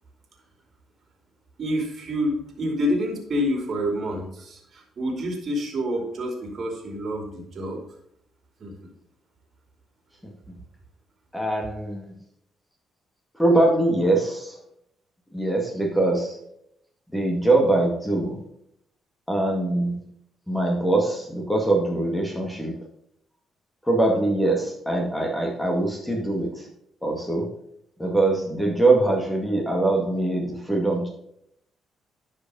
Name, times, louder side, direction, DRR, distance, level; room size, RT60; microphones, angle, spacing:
voice 1, 1.6-7.8 8.6-8.9, equal, 50° right, 2 dB, 2.8 m, -28 dB
voice 2, 11.3-12.1 13.3-14.6 15.3-16.4 17.1-18.4 19.3-20.0 20.5-22.7 23.8-26.7 27.0-27.5 28.0-31.1, right 2 dB, 5° left, -1 dB, 2.1 m, -23 dB
10.5 x 5.1 x 5.5 m, 0.73 s
cardioid pair, 90°, 0 cm